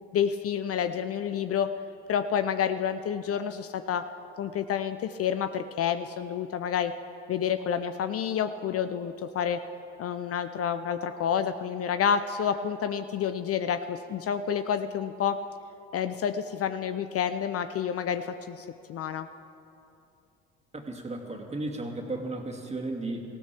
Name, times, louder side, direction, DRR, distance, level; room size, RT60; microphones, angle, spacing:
voice 1, 0.1-1.7 2.1-4.1 4.4-6.9 7.3-9.6 10.0-15.4 15.9-19.3, left 8 dB, 45° left, 10 dB, 0.6 m, -29 dB
voice 2, 20.7-23.2, right 2 dB, 20° right, 2 dB, 2.3 m, -34 dB
18.5 x 16.0 x 3.5 m, 2.7 s
hypercardioid pair, 55°, 33 cm